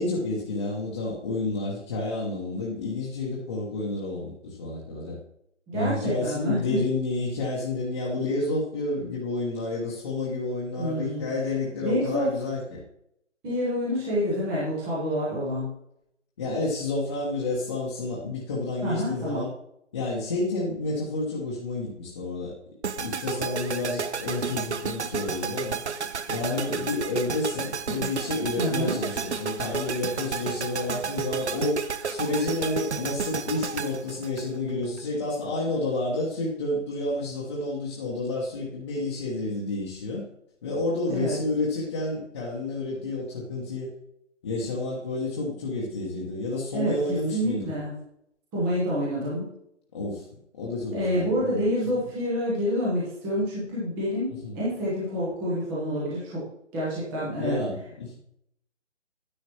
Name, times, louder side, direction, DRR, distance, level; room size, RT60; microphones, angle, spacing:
voice 1, 0.0-5.2 5.7-12.8 16.4-19.5 19.9-22.5 23.0-25.8 26.3-31.8 32.1-40.2 40.6-43.9 44.4-47.7 49.9-50.3 50.6-51.7 54.4-54.6 57.4-58.2, left 2 dB, 25° left, -5 dB, 1.1 m, -30 dB
voice 2, 5.7-6.8 10.8-11.3 11.8-12.3 13.4-15.7 18.8-19.4 28.6-29.0 41.1-41.3 46.7-47.9 48.5-49.5 50.9-56.4 56.7-57.6, equal, 5° right, -7 dB, 0.8 m, -28 dB
sound 1, 22.8-35.0, right 6 dB, 65° right, 0.7 m, -32 dB
9.8 x 8.5 x 3.0 m, 0.76 s
figure-of-eight pair, 150°, 37 cm